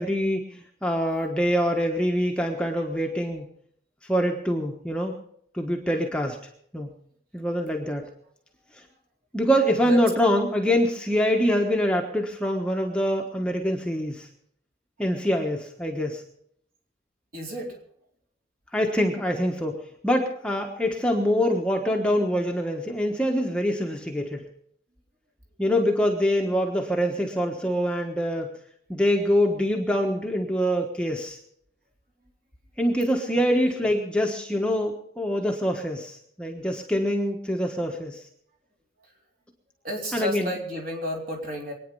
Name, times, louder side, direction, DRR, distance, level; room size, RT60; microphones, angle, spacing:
voice 1, 0.0-3.5 4.1-5.1 5.5-6.4 6.7-6.9 7.3-8.1 9.3-14.3 15.0-16.2 18.7-24.4 25.6-28.5 28.9-31.4 32.8-38.2 40.1-40.5, equal, 5° left, 1 dB, 1.3 m, -25 dB
voice 2, 17.3-17.8 26.3-26.4 33.3-33.4 33.8-33.9 39.0-39.1 39.8-41.7, equal, 50° right, 0 dB, 4.2 m, -32 dB
23.5 x 9.5 x 5.5 m, 0.67 s
head